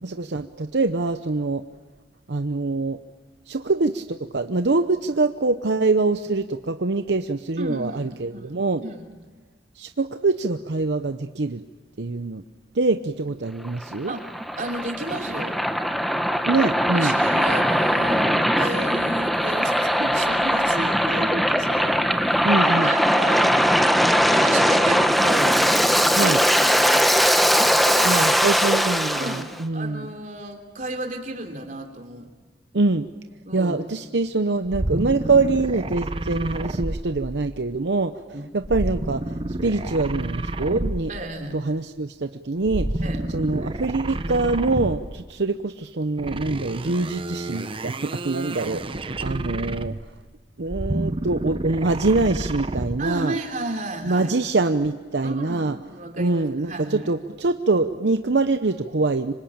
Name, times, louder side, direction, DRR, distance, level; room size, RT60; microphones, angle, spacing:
voice 1, 0.0-1.6 2.3-3.0 3.5-8.8 9.8-11.6 12.0-12.4 12.7-14.1 16.4-17.2 22.4-22.9 26.2-26.4 28.0-30.1 32.7-33.1 33.5-38.2 38.5-39.2 39.6-41.1 41.5-42.9 43.3-50.0 50.6-53.3 54.0-55.8 56.1-59.3, right 3 dB, 80° right, 8 dB, 0.8 m, -24 dB
voice 2, 7.6-9.1 14.1-14.3 14.5-15.6 16.6-25.6 26.1-27.3 27.8-28.4 29.1-29.5 29.7-32.3 33.4-33.7 38.3-38.5 41.1-41.6 43.0-43.3 53.0-54.3 55.2-57.1, right 2 dB, 45° right, 3 dB, 3.3 m, -33 dB
Waves surf, 13.6-29.4, equal, ahead, 1.0 m, -20 dB
sound 1, 34.7-37.7 38.6-41.3 42.6-45.2 46.2-50.2 50.6-53.1, right 1 dB, 30° right, 0.9 m, -30 dB
26.0 x 25.5 x 8.8 m, 1.3 s
head